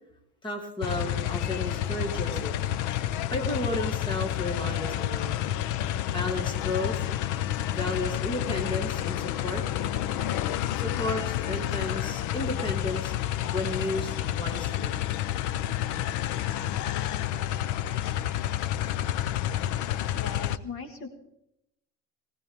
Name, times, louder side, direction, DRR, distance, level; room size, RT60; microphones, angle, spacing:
voice 1, 0.4-2.5 3.3-5.4 6.1-7.1 7.7-9.6 10.7-13.1 13.5-15.0, left 1 dB, 15° left, 2 dB, 1.8 m, -33 dB
sound 1, 0.8-20.6, left 12 dB, 70° left, 0.7 m, -29 dB
voice 2, 20.1-21.1, left 5 dB, 45° left, 6 dB, 1.7 m, -39 dB
21.0 x 16.0 x 3.5 m, 0.83 s
cardioid pair, 170°, 32 cm